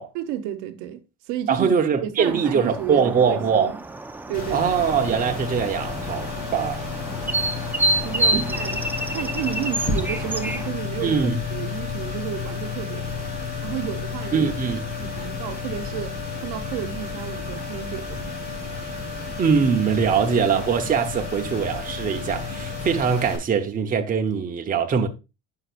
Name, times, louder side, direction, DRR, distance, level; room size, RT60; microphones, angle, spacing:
voice 1, 0.1-3.8 4.3-4.8 7.2-7.3 8.0-8.8 9.1-11.2 11.5-13.3 13.6-14.5 15.0-16.2 16.4-18.4, right 11 dB, 80° right, 0.9 m, -32 dB
voice 2, 1.5-3.7 4.5-6.8 8.3-8.6 11.0-11.4 14.3-14.8 19.4-25.1, right 6 dB, 25° right, 0.9 m, -22 dB
sound 1, 2.2-10.7, right 1 dB, 5° right, 0.5 m, -29 dB
sound 2, 4.3-23.4, left 4 dB, 30° left, 3.6 m, -31 dB
9.6 x 5.8 x 2.5 m
cardioid pair, 130°, 32 cm